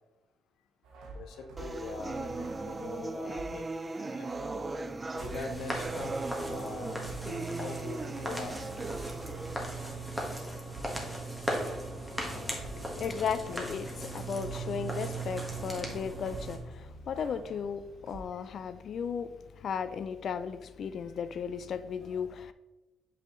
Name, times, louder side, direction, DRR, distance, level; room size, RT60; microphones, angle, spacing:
sound 1, 0.8-3.7 4.2-7.4 7.6-14.8 15.0-18.2, right 2 dB, 85° right, 1.1 m, -49 dB
voice 1, 1.1-3.7 4.0-4.5 5.1-6.1 6.5-8.6, left 5 dB, 80° left, 0.8 m, -43 dB
sound 2, 1.6-9.6, right 3 dB, 25° right, 0.3 m, -38 dB
sound 3, 5.2-16.6, right 2 dB, 5° right, 1.4 m, -38 dB
voice 2, 13.0-22.5, left 7 dB, 60° left, 0.3 m, -35 dB
6.6 x 5.5 x 3.1 m
cardioid pair, 95°, 0 cm